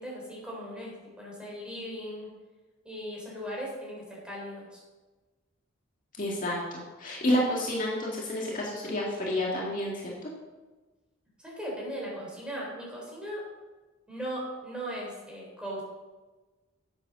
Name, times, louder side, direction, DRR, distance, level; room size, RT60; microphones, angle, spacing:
voice 1, 0.0-2.3 2.8-4.8 11.4-13.4 14.1-15.8, equal, 5° right, -4 dB, 4.0 m, -38 dB
voice 2, 6.2-9.9 10.2-10.3, left 1 dB, 40° left, -4 dB, 2.1 m, -29 dB
9.7 x 8.2 x 6.2 m, 1.2 s
head